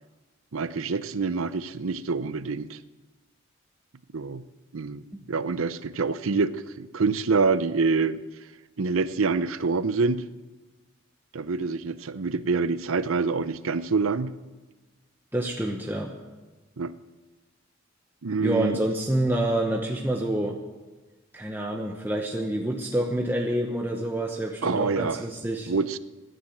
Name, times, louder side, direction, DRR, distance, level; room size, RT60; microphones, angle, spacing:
voice 1, 0.5-2.8 4.1-4.4 4.7-5.0 5.3-8.2 8.8-10.2 11.3-14.3 16.8-16.9 18.2-18.8 24.6-25.2 25.7-26.0, right 4 dB, 85° right, 14 dB, 0.7 m, -26 dB
voice 2, 15.3-16.1 18.4-20.6 21.3-25.7, right 1 dB, 10° right, 1 dB, 0.9 m, -27 dB
16.0 x 10.5 x 7.9 m, 1.2 s
head